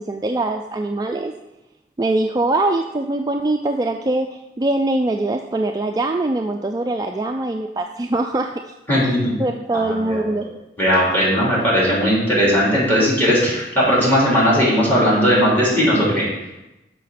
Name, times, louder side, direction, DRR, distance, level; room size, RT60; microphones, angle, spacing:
voice 1, 0.0-1.3 2.0-8.6 9.4-10.5, right 2 dB, 20° right, 4 dB, 0.3 m, -22 dB
voice 2, 8.9-9.3 9.7-10.2 10.8-16.2, equal, 10° left, -6 dB, 3.4 m, -17 dB
6.9 x 5.6 x 5.8 m, 0.96 s
head